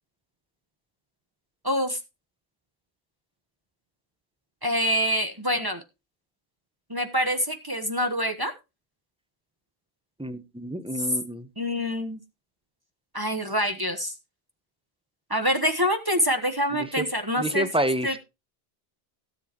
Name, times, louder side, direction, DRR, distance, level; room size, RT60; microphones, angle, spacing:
voice 1, 1.6-2.0 4.6-5.8 6.9-8.5 11.0-11.1 11.6-12.2 13.1-14.1 15.3-17.7 18.0-18.2, equal, 20° right, 1.2 m, -26 dB
voice 2, 10.2-11.5 17.0-17.1 17.4-18.2, right 1 dB, 5° right, 0.9 m, -28 dB
17.0 x 7.8 x 3.0 m
omnidirectional pair, 1.1 m